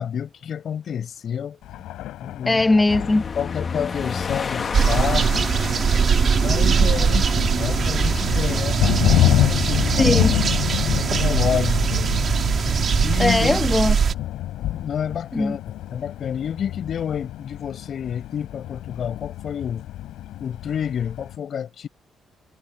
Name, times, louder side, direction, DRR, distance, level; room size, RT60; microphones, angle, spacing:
voice 1, 0.0-1.6 2.2-2.6 3.4-5.6 6.4-8.8 9.1-10.2 11.0-12.2 13.0-13.6 14.7-19.8 20.4-21.9, left 8 dB, 60° left, 5.4 m, -29 dB
Thunder, 1.6-21.4, left 14 dB, 85° left, 5.6 m, -28 dB
voice 2, 2.5-3.2 10.0-10.3 13.2-14.0 15.3-15.6, left 2 dB, 15° left, 1.5 m, -19 dB
sound 1, 2.9-8.6, left 5 dB, 40° left, 1.6 m, -31 dB
sound 2, 4.7-14.1, right 6 dB, 50° right, 2.5 m, -21 dB
cardioid pair, 90°, 0 cm